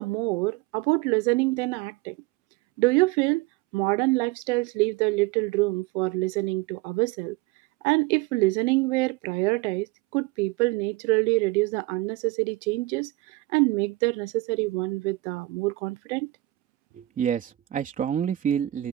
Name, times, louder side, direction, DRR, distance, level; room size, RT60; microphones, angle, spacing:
voice 1, 0.0-2.1 2.8-3.5 3.7-7.4 7.8-9.9 10.1-13.1 13.5-16.3, right 25 dB, 75° right, 0.6 m, -25 dB
voice 2, 16.9-18.9, right 8 dB, 20° right, 3.3 m, -27 dB
cardioid pair, 170°, 35 cm